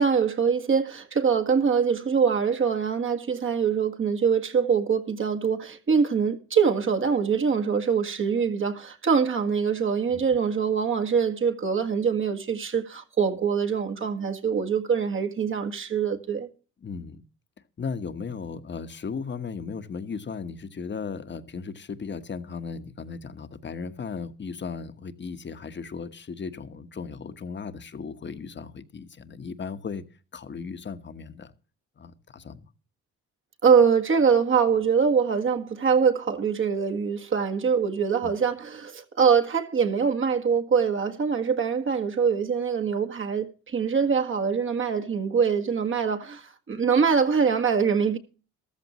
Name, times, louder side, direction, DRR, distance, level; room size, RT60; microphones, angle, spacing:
voice 1, 0.0-16.5 33.6-48.2, right 6 dB, 40° right, 1.7 m, -24 dB
voice 2, 16.8-17.2 17.8-30.0 30.3-31.5 32.0-32.6 38.2-38.3, left 5 dB, 35° left, 1.4 m, -36 dB
14.0 x 13.5 x 3.1 m
cardioid pair, 90°, 30 cm